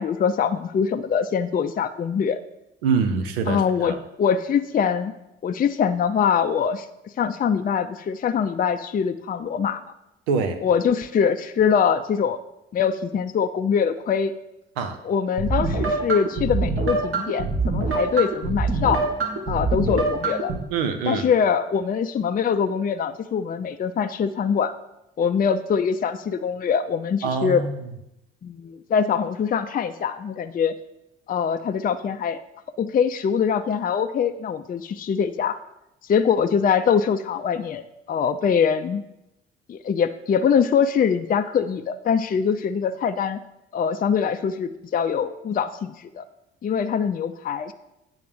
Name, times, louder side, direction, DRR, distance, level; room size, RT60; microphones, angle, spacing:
voice 1, 0.0-2.4 3.5-5.1 5.4-6.9 7.2-9.8 10.6-12.4 12.7-14.3 15.0-19.0 19.5-20.5 21.1-24.7 25.2-27.6 28.4-30.7 31.3-32.4 32.8-35.6 36.1-37.8 38.1-39.0 39.7-43.4 43.7-46.2 46.6-47.7, left 7 dB, 30° left, 9 dB, 0.5 m, -23 dB
voice 2, 2.8-4.0 10.3-10.6 14.8-15.0 20.7-21.3 27.2-27.8, right 5 dB, 75° right, 8 dB, 0.8 m, -24 dB
sound 1, 15.4-20.6, right 3 dB, 45° right, 1.8 m, -25 dB
8.4 x 3.9 x 6.5 m, 0.88 s
figure-of-eight pair, 45°, 30 cm